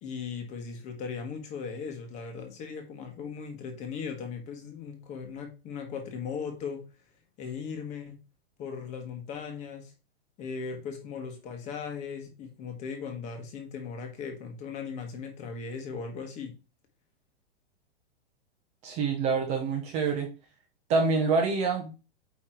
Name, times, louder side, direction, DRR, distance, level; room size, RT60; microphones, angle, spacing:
voice 1, 0.0-6.8 7.4-8.2 8.6-9.9 10.4-16.5, left 5 dB, 20° left, 5 dB, 1.3 m, -38 dB
voice 2, 18.8-20.3 20.9-21.9, right 4 dB, 20° right, 3 dB, 0.8 m, -26 dB
9.0 x 3.2 x 4.4 m, 0.32 s
supercardioid pair, 170°, 33 cm